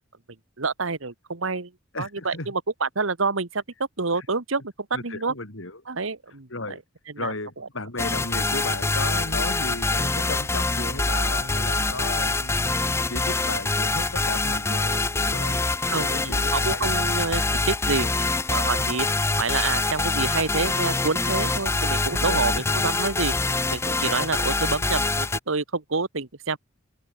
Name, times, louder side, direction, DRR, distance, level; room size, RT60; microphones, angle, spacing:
voice 1, 0.6-1.7 2.0-3.6 4.0-4.7 5.0-5.3 5.9-6.5 7.1-7.3 15.8-19.1 19.4-23.3 23.7-26.6, right 4 dB, 70° right, 1.5 m, -28 dB
voice 2, 1.9-2.5 4.2-4.3 4.9-5.8 6.5-6.8 7.2-12.8 13.1-17.1 18.8-19.0 22.1-22.9 24.0-24.2, left 2 dB, 65° left, 3.8 m, -35 dB
sound 1, 8.0-25.4, left 3 dB, 15° left, 0.6 m, -25 dB
head